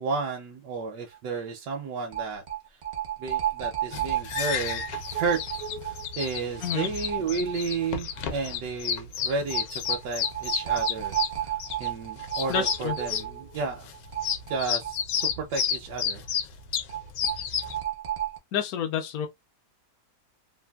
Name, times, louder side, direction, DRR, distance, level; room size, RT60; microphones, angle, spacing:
voice 1, 0.0-2.4 2.7-2.8 3.2-4.9 5.1-5.4 5.8-13.9 14.5-16.2, right 4 dB, 75° right, 1.2 m, -32 dB
sound 1, 0.8-0.9 1.1-1.2 2.1-7.9 8.2-8.3 9.5-15.6 15.9-16.0 16.9-18.4, right 12 dB, 55° right, 0.6 m, -32 dB
sound 2, 3.9-17.8, left 8 dB, 90° left, 1.2 m, -31 dB
voice 2, 12.5-12.9 18.5-19.3, left 8 dB, 70° left, 0.9 m, -29 dB
3.3 x 2.2 x 2.2 m
omnidirectional pair, 1.9 m